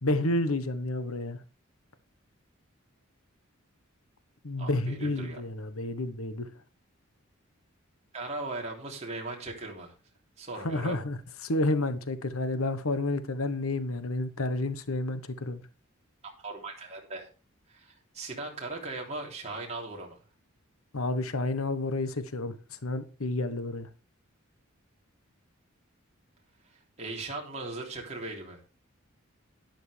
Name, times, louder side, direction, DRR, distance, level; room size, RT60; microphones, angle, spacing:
voice 1, 0.0-1.4 4.4-6.5 10.5-11.2 11.4-15.6 20.9-22.5 22.8-23.9, left 2 dB, 80° left, 1.2 m, -30 dB
voice 2, 4.6-5.4 8.1-9.9 10.4-11.0 16.2-17.3 17.7-20.2 27.0-28.6, right 2 dB, 35° right, 3.3 m, -38 dB
12.0 x 10.5 x 3.4 m
head